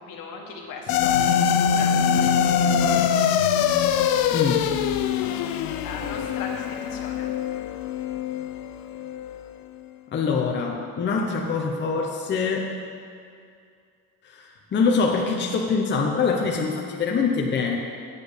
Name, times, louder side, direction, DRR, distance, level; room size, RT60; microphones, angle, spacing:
voice 1, 0.1-1.4 1.7-3.1 5.2-5.5 5.8-7.3, left 4 dB, 70° left, 1 dB, 1.5 m, -38 dB
sound 1, 0.9-9.4, left 8 dB, 85° left, 0.6 m, -23 dB
voice 2, 4.3-4.8 10.1-12.7 14.2-17.8, left 5 dB, 30° left, 0 dB, 0.8 m, -24 dB
8.2 x 7.7 x 5.1 m, 2.3 s
cardioid pair, 130°, 35 cm